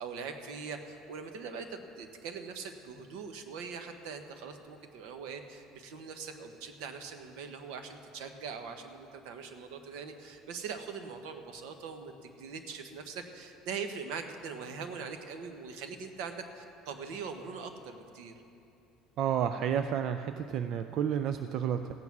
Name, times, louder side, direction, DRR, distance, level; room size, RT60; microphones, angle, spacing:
voice 1, 0.0-18.3, right 5 dB, 75° right, 6 dB, 1.2 m, -42 dB
voice 2, 19.2-21.9, right 8 dB, 45° right, 9 dB, 0.4 m, -31 dB
15.0 x 9.5 x 6.1 m, 2.8 s
cardioid pair, 160°, 0 cm